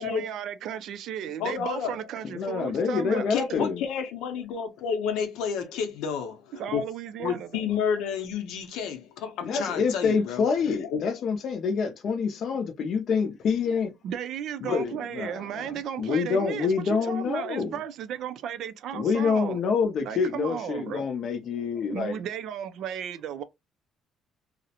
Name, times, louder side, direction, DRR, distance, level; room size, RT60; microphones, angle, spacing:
voice 1, 0.0-3.3 6.5-7.6 14.0-19.6 20.0-21.0 21.9-23.4, right 9 dB, 60° right, 0.3 m, -35 dB
voice 2, 1.4-2.0 3.1-6.8 7.2-11.1, left 7 dB, 85° left, 0.7 m, -31 dB
voice 3, 2.2-3.8 9.4-13.9 14.6-15.7 16.0-17.7 18.9-22.2, left 5 dB, 45° left, 0.5 m, -27 dB
2.4 x 2.0 x 2.7 m
cardioid pair, 170°, 0 cm